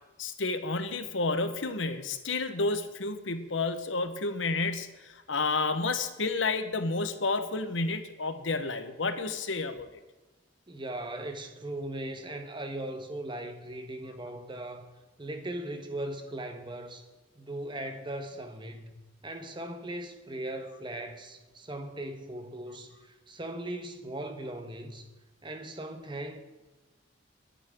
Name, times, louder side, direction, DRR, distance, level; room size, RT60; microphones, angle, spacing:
voice 1, 0.2-9.9, left 3 dB, 85° left, 1.3 m, -30 dB
voice 2, 10.7-14.9 15.2-17.0 17.3-18.9 19.2-25.1 25.4-26.4, right 1 dB, 25° right, 1.4 m, -38 dB
22.5 x 9.7 x 3.8 m
head